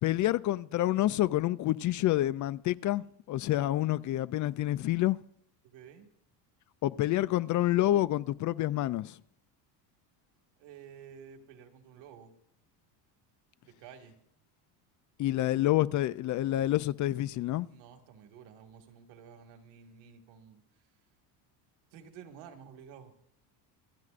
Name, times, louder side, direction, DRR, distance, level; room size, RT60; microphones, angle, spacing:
voice 1, 0.0-5.2 6.8-9.2 15.2-17.7, left 14 dB, 45° left, 0.4 m, -28 dB
voice 2, 5.6-6.1 10.6-12.3 13.6-14.1 17.7-20.6 21.9-23.2, right 7 dB, 75° right, 2.0 m, -51 dB
27.0 x 10.5 x 2.5 m
cardioid pair, 120°, 44 cm